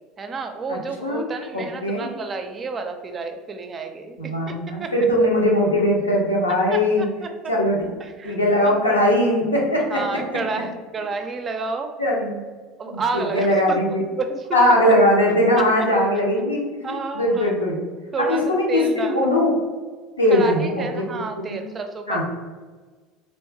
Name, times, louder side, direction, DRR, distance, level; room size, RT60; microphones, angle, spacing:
voice 1, 0.2-4.9 6.7-7.5 8.0-8.8 9.9-11.9 12.8-14.5 15.6-15.7 16.8-17.5 18.1-19.3 20.3-22.2, right 4 dB, 30° right, 6 dB, 0.5 m, -30 dB
voice 2, 0.7-1.2 1.5-2.1 4.2-7.1 7.5-7.8 8.2-10.4 12.0-12.4 12.9-14.0 14.5-17.8 18.2-19.5 20.2-21.6 22.1-22.2, left 1 dB, 85° left, -2 dB, 0.7 m, -20 dB
3.4 x 3.0 x 3.2 m, 1.4 s
figure-of-eight pair, 70°, 0 cm